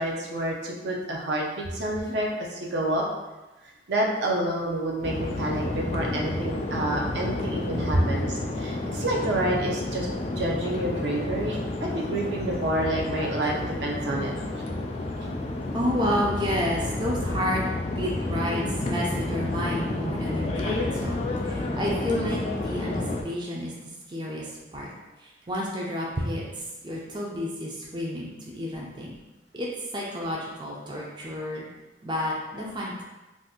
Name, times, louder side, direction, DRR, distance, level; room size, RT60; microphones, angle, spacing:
voice 1, 0.0-3.0 3.9-10.1 10.4-14.6, right 1 dB, 70° right, -2 dB, 0.6 m, -29 dB
sound 1, 5.0-23.2, left 2 dB, 35° left, 0.4 m, -30 dB
voice 2, 15.7-17.6 18.0-21.2 21.4-23.7 24.1-24.9 25.2-29.1 29.5-29.7 29.9-31.7 32.0-33.0, equal, 25° right, -3 dB, 0.4 m, -30 dB
2.6 x 2.4 x 3.6 m, 1.1 s
head